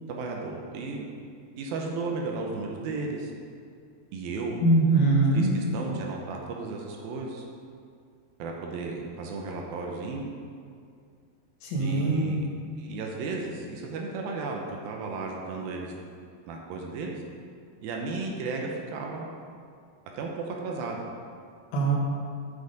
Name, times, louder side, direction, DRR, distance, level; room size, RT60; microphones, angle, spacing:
voice 1, 0.1-1.1 1.6-3.3 4.1-4.6 5.3-7.4 8.4-10.2 11.8-12.5 12.8-15.9 16.5-17.2 17.8-19.3 20.2-21.0, right 3 dB, 75° right, 0 dB, 2.3 m, -34 dB
voice 2, 4.6-5.5 11.6-12.3 21.7-21.9, right 2 dB, 65° left, -3 dB, 2.9 m, -22 dB
7.4 x 6.6 x 5.1 m, 2.3 s
omnidirectional pair, 5.0 m